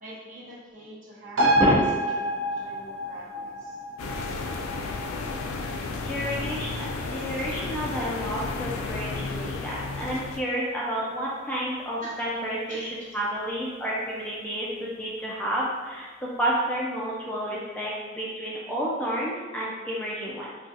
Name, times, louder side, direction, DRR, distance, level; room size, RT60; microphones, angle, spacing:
voice 1, 0.0-2.0 2.5-3.8 8.7-8.9 12.0-12.1 12.7-13.1, right 1 dB, 40° right, -6 dB, 0.8 m, -45 dB
sound 1, 1.4-8.3 8.7-8.8, right 1 dB, 85° right, 0.7 m, -29 dB
sound 2, 4.0-10.4, left 3 dB, 90° left, 0.3 m, -33 dB
voice 2, 6.0-20.5, equal, 5° left, -6 dB, 0.3 m, -30 dB
3.9 x 2.3 x 2.5 m, 1.3 s
head